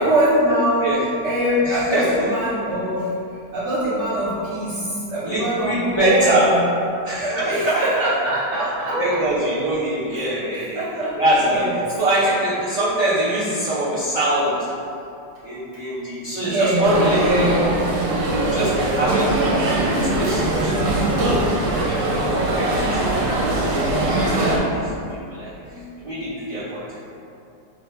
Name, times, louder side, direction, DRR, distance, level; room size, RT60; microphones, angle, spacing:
voice 1, 0.0-6.7 7.2-9.2 10.1-11.1 11.4-11.7 16.4-17.9 25.5-25.8, equal, 70° right, -9 dB, 1.4 m, -23 dB
voice 2, 1.6-2.3 5.2-6.5 7.0-8.1 8.9-10.8 11.2-11.7 12.0-14.7 15.4-17.7 18.1-19.7 20.0-20.7 21.0-25.0 25.3-27.0, right 1 dB, 50° right, -11 dB, 0.4 m, -24 dB
sound 1, 16.8-24.6, right 2 dB, 85° right, 1.3 m, -21 dB
3.0 x 2.3 x 4.2 m, 2.6 s
omnidirectional pair, 1.9 m